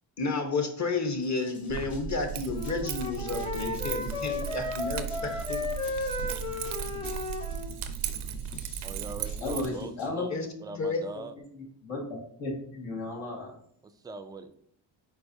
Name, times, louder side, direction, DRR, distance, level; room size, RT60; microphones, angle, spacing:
voice 1, 0.2-5.7 10.3-10.5 10.8-11.0, left 3 dB, 35° left, 6 dB, 1.0 m, -31 dB
sound 1, 1.2-10.1, left 2 dB, 60° left, 1.4 m, -50 dB
Keys jangling, 1.7-9.7, right 9 dB, 85° right, 0.6 m, -36 dB
Wind instrument woodwind instrument, 2.5-7.7, left 3 dB, 10° left, 0.8 m, -34 dB
voice 2, 8.8-10.3 10.6-11.3 13.8-14.5, right 3 dB, 10° right, 6 dB, 0.3 m, -41 dB
voice 3, 9.4-10.3 10.7-10.9 11.8-13.5, left 2 dB, 75° left, -2 dB, 2.0 m, -34 dB
4.5 x 4.3 x 2.7 m, 0.66 s
cardioid pair, 70°, 47 cm